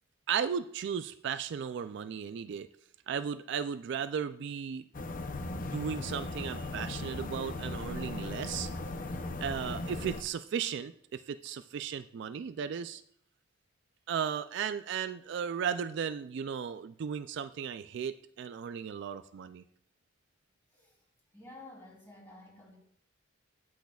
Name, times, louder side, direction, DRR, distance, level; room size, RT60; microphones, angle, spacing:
voice 1, 0.3-2.7 3.1-4.8 5.5-8.7 9.4-13.0 14.1-19.6, right 7 dB, 60° right, 11 dB, 0.3 m, -35 dB
sound 1, 4.9-10.2, left 2 dB, 45° left, 0.6 m, -38 dB
voice 2, 21.3-22.8, left 2 dB, 10° left, -3 dB, 3.2 m, -51 dB
16.0 x 6.3 x 2.3 m, 0.65 s
head